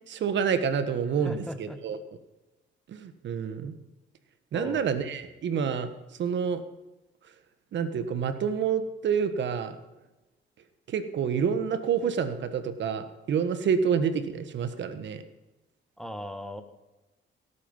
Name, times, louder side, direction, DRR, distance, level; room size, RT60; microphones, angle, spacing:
voice 1, 0.1-2.0 2.9-3.7 4.5-5.9 6.2-6.6 7.7-9.7 10.9-15.2, right 7 dB, 65° right, 10 dB, 1.4 m, -28 dB
voice 2, 1.2-1.8 4.5-4.8 16.0-16.6, equal, ahead, 8 dB, 1.5 m, -37 dB
17.0 x 8.6 x 5.5 m, 1.0 s
cardioid pair, 90°, 20 cm